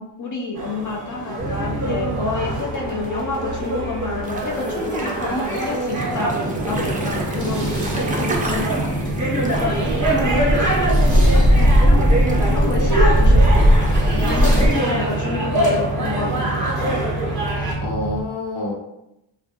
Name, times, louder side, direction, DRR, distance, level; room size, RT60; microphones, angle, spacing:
voice 1, 0.0-7.9 8.2-8.7 9.6-12.0 12.4-17.0, left 2 dB, 40° left, -1 dB, 0.5 m, -29 dB
sound 1, 0.6-17.7, right 1 dB, 40° right, 0.8 m, -25 dB
sound 2, 1.4-18.2, right 2 dB, 60° left, 1.0 m, -27 dB
sound 3, 4.3-14.7, equal, 20° right, 0.3 m, -19 dB
voice 2, 14.1-14.6 17.8-18.7, left 2 dB, 80° left, -2 dB, 0.8 m, -27 dB
2.2 x 2.0 x 2.8 m, 0.87 s
cardioid pair, 85°, 48 cm